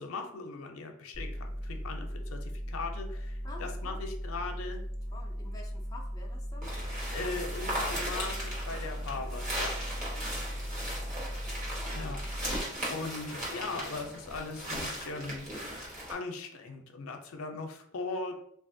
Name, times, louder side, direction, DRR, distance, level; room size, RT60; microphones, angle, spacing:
voice 1, 0.0-4.8 7.1-10.0 11.9-12.2 12.9-15.8 16.1-18.3, left 3 dB, 85° left, 4 dB, 0.5 m, -39 dB
sound 1, 1.1-12.6, equal, 65° right, 1.0 m, -38 dB
voice 2, 3.4-4.0 5.1-6.8 10.1-10.7 11.2-12.2 12.8-13.0, left 2 dB, 15° left, -1 dB, 0.4 m, -50 dB
sound 2, 6.6-16.1, right 1 dB, 40° right, 1.0 m, -37 dB
3.3 x 2.4 x 2.6 m, 0.70 s
head